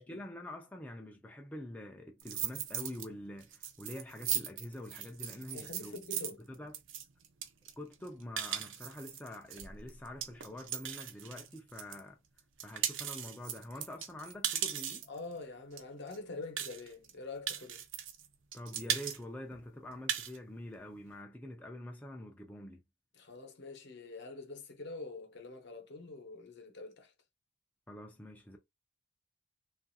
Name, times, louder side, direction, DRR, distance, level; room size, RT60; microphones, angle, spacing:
voice 1, 0.0-6.0 6.5-6.8 7.8-12.2 12.6-15.0 18.5-22.8 27.9-28.6, left 1 dB, 10° left, 0.3 m, -46 dB
sound 1, 2.2-3.1 3.4-12.0 12.4-15.2 15.8-15.9 16.1-16.2 16.6-17.1 17.5-18.3 18.5-19.2 19.5-19.6 19.9-20.4, right 9 dB, 70° right, 0.5 m, -38 dB
voice 2, 5.5-6.4 15.1-17.8 23.2-27.1, left 3 dB, 60° left, 0.8 m, -45 dB
3.0 x 2.4 x 2.6 m
head